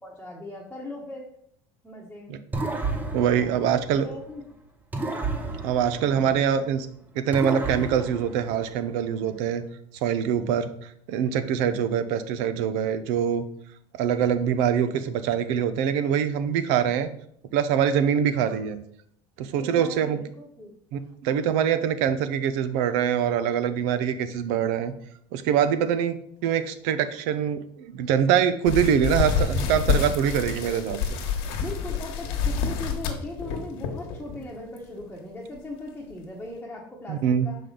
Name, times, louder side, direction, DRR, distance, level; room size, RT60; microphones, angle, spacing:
voice 1, 0.0-1.3 1.8-2.3 3.3-4.4 6.1-6.4 11.5-11.9 16.5-16.9 18.3-18.7 19.6-20.7 31.6-37.6, left 2 dB, 10° left, -4 dB, 1.1 m, -39 dB
sound 1, 2.5-4.4 4.9-6.8 7.3-9.0, right 3 dB, 15° right, 0.8 m, -32 dB
voice 2, 3.1-4.1 5.6-6.9 7.1-9.6 10.0-13.5 13.9-17.1 17.5-18.8 19.4-20.2 20.9-24.9 25.3-26.2 26.4-31.0 37.1-37.5, right 8 dB, 75° right, 12 dB, 0.6 m, -24 dB
sound 2, 28.7-34.4 34.8-35.0 35.6-35.7 36.1-36.2, left 6 dB, 80° left, 1.3 m, -27 dB
6.0 x 5.0 x 3.9 m, 0.67 s
supercardioid pair, 115°, 12 cm